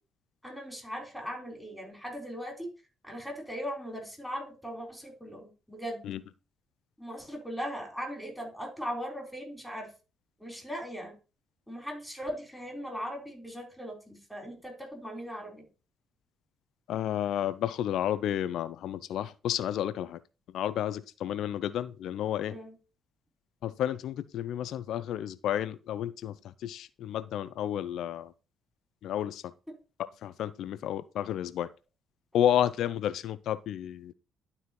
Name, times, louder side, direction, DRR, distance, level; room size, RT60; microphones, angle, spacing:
voice 1, 0.4-2.7 3.0-6.0 7.0-9.9 10.4-11.1 11.7-15.7 22.5-22.7, equal, 5° left, 3.9 m, -39 dB
voice 2, 16.9-20.2 20.5-22.5 23.6-28.3 29.0-29.5 30.2-31.7 32.3-34.1, left 11 dB, 65° left, 0.4 m, -31 dB
12.0 x 4.2 x 3.0 m
hypercardioid pair, 45°, 0 cm